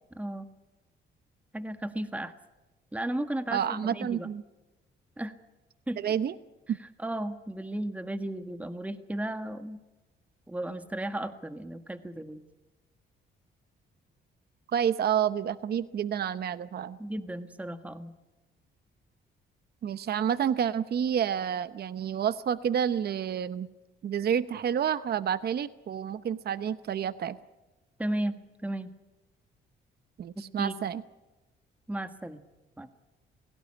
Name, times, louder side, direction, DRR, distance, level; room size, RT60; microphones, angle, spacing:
voice 1, 0.1-0.5 1.5-2.3 2.9-4.3 5.2-5.3 5.9-6.1 6.8-9.8 10.5-12.4 17.0-18.1 28.0-28.4 28.6-28.9 30.6-30.8 31.9-32.4 32.8-32.9, right 1 dB, 5° right, 9 dB, 1.5 m, -34 dB
voice 2, 3.5-4.4 6.0-6.4 6.7-6.8 14.7-17.0 19.8-23.7 24.0-27.4 30.2-31.0, right 8 dB, 55° right, 14 dB, 0.8 m, -29 dB
28.5 x 18.0 x 9.9 m, 1.1 s
cardioid pair, 90°, 20 cm